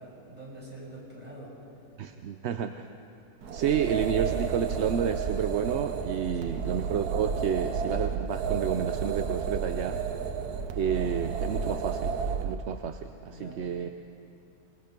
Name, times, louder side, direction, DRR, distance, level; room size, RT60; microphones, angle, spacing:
voice 1, 0.0-1.6 6.3-6.7 13.3-13.6, right 1 dB, 25° right, -5 dB, 6.5 m, -45 dB
voice 2, 2.0-2.9 3.5-10.0 10.7-13.9, right 8 dB, 60° right, 7 dB, 0.8 m, -30 dB
sound 1, 3.4-12.5, right 6 dB, 90° right, 1.4 m, -31 dB
26.0 x 20.0 x 5.3 m, 2.6 s
omnidirectional pair, 1.6 m